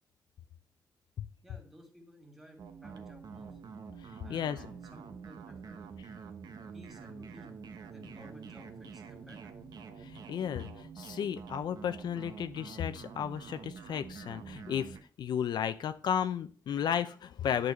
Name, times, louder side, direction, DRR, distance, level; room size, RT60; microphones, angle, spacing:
voice 1, 1.4-3.6 4.2-5.8 6.7-7.6 7.8-9.5, equal, 5° right, 2 dB, 2.5 m, -55 dB
sound 1, 2.6-15.0, right 5 dB, 65° right, 1.1 m, -47 dB
voice 2, 4.3-4.7 10.0-17.7, left 8 dB, 80° left, 10 dB, 0.6 m, -34 dB
11.0 x 4.1 x 7.7 m, 0.42 s
wide cardioid pair, 160°, 7 cm